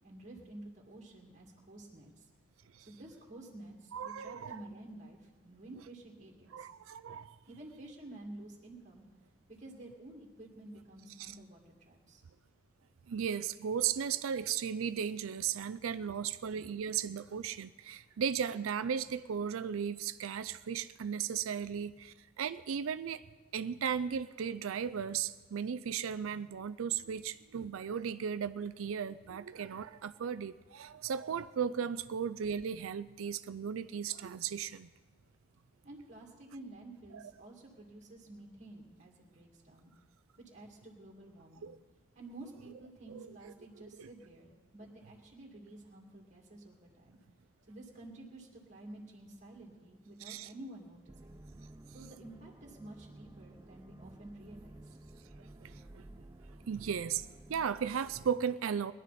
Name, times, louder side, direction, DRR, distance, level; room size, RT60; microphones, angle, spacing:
voice 1, 0.0-2.3 2.8-6.7 7.4-9.0 9.5-12.2 35.8-39.9 40.4-41.7 42.1-47.2 47.7-51.4 51.9-55.0, right 1 dB, 35° right, -1 dB, 2.4 m, -51 dB
voice 2, 3.9-4.6 6.5-7.4 11.2-11.3 13.1-23.2 23.5-34.9 37.1-37.2 41.6-41.8 43.1-43.5 44.0-44.1 50.2-50.5 55.6-56.0 56.7-58.9, right 7 dB, 80° right, 13 dB, 0.4 m, -36 dB
sound 1, 51.1-58.3, right 1 dB, 15° right, 0.4 m, -53 dB
21.5 x 11.5 x 4.2 m, 1.4 s
head